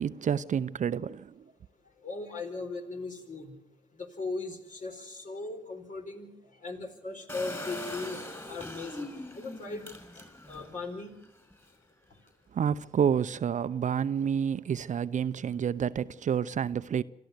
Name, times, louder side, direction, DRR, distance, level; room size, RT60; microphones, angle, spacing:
voice 1, 0.0-1.4 12.5-17.0, right 8 dB, 50° right, 0.7 m, -29 dB
voice 2, 2.0-3.5 4.0-6.3 6.6-9.1 9.3-9.9 10.1-11.1, left 3 dB, 50° left, 4.4 m, -38 dB
Engine, 7.3-10.7 11.2-11.3 11.5-11.6, left 1 dB, 15° left, 5.9 m, -41 dB
26.5 x 13.5 x 8.1 m
hypercardioid pair, 45°, 16 cm